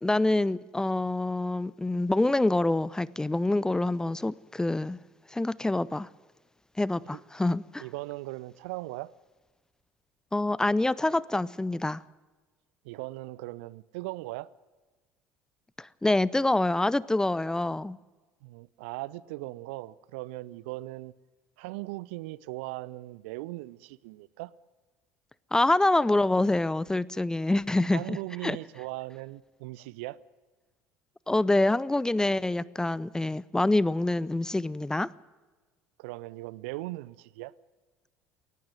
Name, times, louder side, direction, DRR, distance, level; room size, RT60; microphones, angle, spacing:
voice 1, 0.0-5.0 5.3-6.1 6.8-7.8 10.3-12.0 15.8-18.0 25.5-28.2 28.4-28.6 31.3-35.1, left 2 dB, 10° left, 0.5 m, -26 dB
voice 2, 7.8-9.1 11.1-11.2 12.8-14.5 18.4-21.1 21.6-24.5 27.9-30.2 36.0-37.5, right 20 dB, 60° right, 0.6 m, -39 dB
19.0 x 15.0 x 9.4 m
figure-of-eight pair, 60°, 7 cm